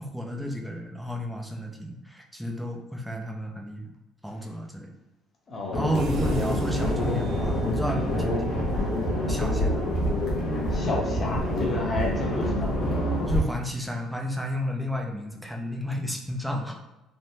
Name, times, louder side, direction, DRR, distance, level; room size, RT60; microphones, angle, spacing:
voice 1, 0.0-3.9 4.2-4.9 5.7-8.9 9.3-9.9 11.2-11.4 11.6-11.7 13.3-16.8, equal, ahead, 1 dB, 0.5 m, -32 dB
voice 2, 5.5-6.0 10.7-12.7, left 2 dB, 35° left, -2 dB, 0.9 m, -31 dB
sound 1, 5.7-13.4, left 1 dB, 70° left, 0.7 m, -27 dB
sound 2, 5.9-12.1, right 6 dB, 60° right, 0.3 m, -38 dB
3.3 x 2.1 x 2.7 m, 0.95 s
cardioid pair, 95°, 0 cm